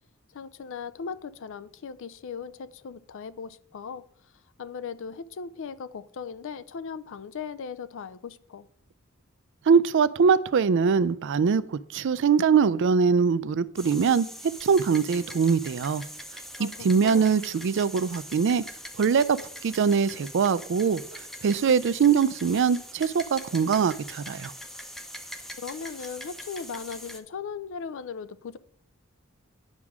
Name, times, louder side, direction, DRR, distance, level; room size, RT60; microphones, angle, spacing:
voice 1, 0.3-4.0 4.6-8.7 16.6-17.3 25.6-28.6, left 6 dB, 60° left, 0.4 m, -38 dB
voice 2, 9.7-14.3 14.6-16.0 16.6-18.6 19.0-21.0 21.4-24.5, right 6 dB, 55° right, 0.4 m, -22 dB
sound 1, 13.8-27.2, equal, ahead, 0.6 m, -42 dB
9.6 x 6.1 x 3.6 m
head